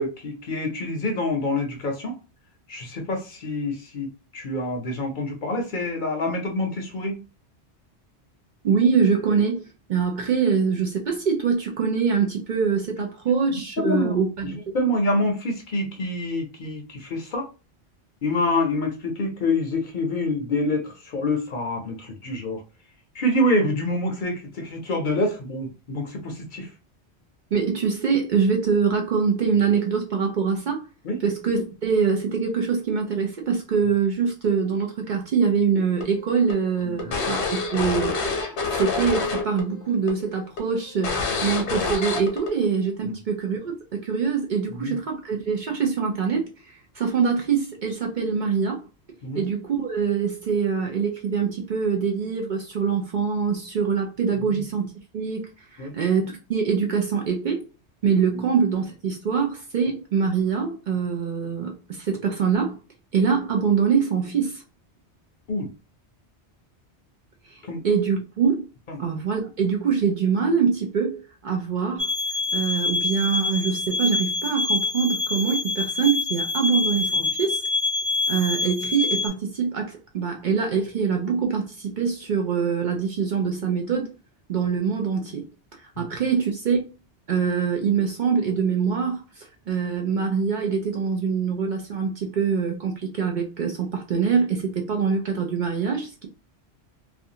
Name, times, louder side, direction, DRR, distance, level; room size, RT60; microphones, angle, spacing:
voice 1, 0.0-2.2 2.7-7.2 13.5-17.5 18.2-22.6 23.1-26.7 31.0-31.2 36.8-37.3 41.3-41.4 43.0-43.2 44.7-45.0 49.2-49.4 54.4-54.6 55.8-55.9 58.3-58.4 65.5-65.7 67.6-67.8 68.9-69.0 86.0-86.1, left 1 dB, 55° left, 0.7 m, -27 dB
voice 2, 8.6-9.6 9.9-14.6 27.5-30.8 31.2-38.1 38.7-48.8 49.3-54.9 55.1-57.6 58.0-62.8 63.1-64.6 67.5-68.6 69.0-72.1 72.5-77.6 78.3-84.1 84.5-85.4 85.8-86.8 87.3-96.3, right 6 dB, 55° right, 0.6 m, -24 dB
sound 1, 36.0-39.6 39.9-40.1 40.6-40.7 41.0-42.5, left 4 dB, 85° left, 1.0 m, -27 dB
sound 2, 72.0-79.3, left 3 dB, 25° right, 1.2 m, -26 dB
2.5 x 2.2 x 2.7 m
omnidirectional pair, 1.1 m